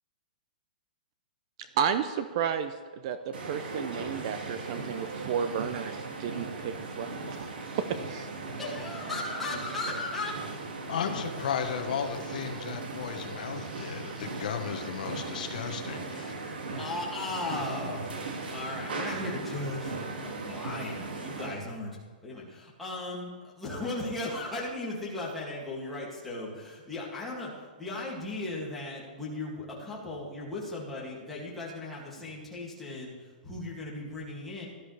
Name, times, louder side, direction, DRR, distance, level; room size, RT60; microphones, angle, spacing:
voice 1, 1.6-2.8 3.0-7.5 7.7-8.3, right 8 dB, 35° right, 10 dB, 0.5 m, -32 dB
sound 1, 3.3-21.6, right 3 dB, 80° right, 2.3 m, -38 dB
voice 2, 8.4-10.4 16.8-21.9 22.2-34.7, left 2 dB, 5° left, -6 dB, 2.4 m, -37 dB
voice 3, 10.9-16.3, left 7 dB, 55° left, 5 dB, 1.3 m, -34 dB
17.5 x 12.5 x 3.4 m, 1.5 s
hypercardioid pair, 175°, 5 cm